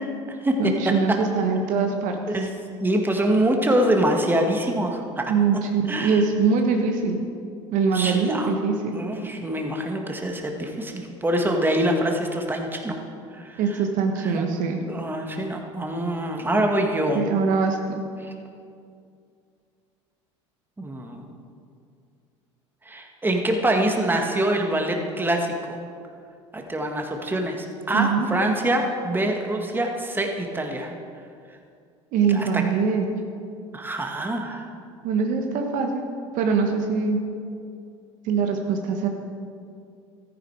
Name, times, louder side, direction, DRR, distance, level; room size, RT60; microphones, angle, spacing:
voice 1, 0.0-1.2 2.3-2.5 2.8-5.3 5.9-6.2 7.9-8.6 8.9-13.0 13.3-13.8 14.2-14.4 14.9-17.2 18.2-18.3 20.8-21.3 22.9-25.8 26.5-30.9 32.3-32.6 33.7-34.7, right 1 dB, 15° right, 2 dB, 1.8 m, -25 dB
voice 2, 0.6-2.2 5.3-7.2 7.7-9.0 13.6-14.8 17.1-18.0 27.9-28.3 32.1-33.0 35.0-36.1 36.3-37.2 38.2-39.1, right 5 dB, 60° right, 3 dB, 1.4 m, -23 dB
13.5 x 10.0 x 4.8 m, 2.4 s
hypercardioid pair, 70°, 15 cm